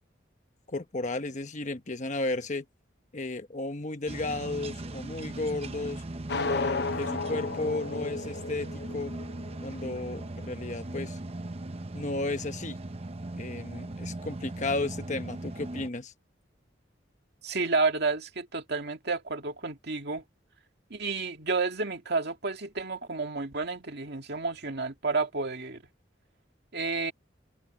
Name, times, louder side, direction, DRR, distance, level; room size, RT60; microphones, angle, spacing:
voice 1, 0.7-2.6 3.1-6.0 6.4-9.1 9.6-11.2 11.9-12.8 13.3-16.1, left 2 dB, 40° left, 1.2 m, -33 dB
sound 1, 4.1-15.9, right 2 dB, 30° right, 0.8 m, -39 dB
sound 2, 6.3-10.3, left 3 dB, 60° left, 0.9 m, -34 dB
voice 2, 17.4-20.2 20.9-25.8 26.7-27.1, right 3 dB, 60° right, 2.3 m, -30 dB
head